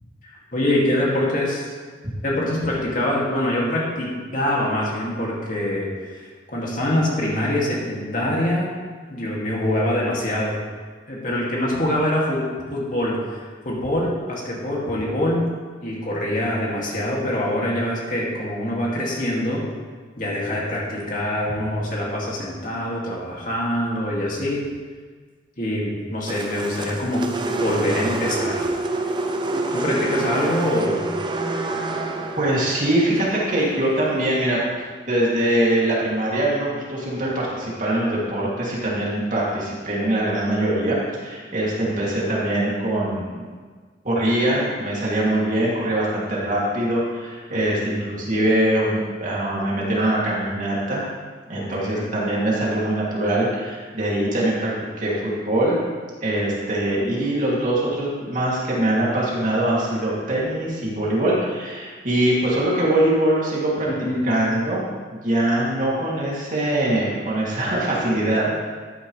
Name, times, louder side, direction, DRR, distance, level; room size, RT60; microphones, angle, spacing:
voice 1, 0.2-1.7 2.2-8.7 9.1-10.5 11.1-12.4 12.7-15.5 15.8-19.6 20.2-24.6 25.6-28.7 29.7-31.0 47.5-47.8 51.5-52.1 63.9-64.3, left 1 dB, 45° left, -4 dB, 2.3 m, -24 dB
sound 1, 26.3-34.5, right 2 dB, 25° right, 0.7 m, -28 dB
voice 2, 32.4-34.6 35.1-41.0 41.2-43.5 44.0-51.0 51.5-54.7 55.0-55.8 56.2-63.9 64.2-64.8 65.1-68.5, right 1 dB, 45° right, -6 dB, 2.7 m, -22 dB
13.0 x 9.3 x 3.3 m, 1.5 s
head